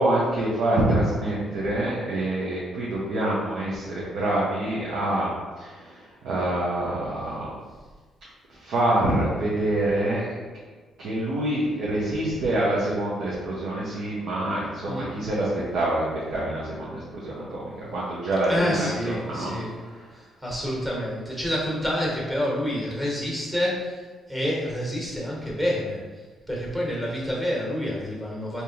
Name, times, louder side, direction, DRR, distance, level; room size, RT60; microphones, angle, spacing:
voice 1, 0.0-5.3 5.6-7.5 8.6-10.4 11.0-19.5 19.9-20.1, right 1 dB, 75° right, -7 dB, 0.8 m, -26 dB
voice 2, 18.5-19.7 20.1-28.6, equal, 10° right, -4 dB, 1.3 m, -28 dB
3.5 x 2.8 x 2.9 m, 1.4 s
cardioid pair, 90°, 0 cm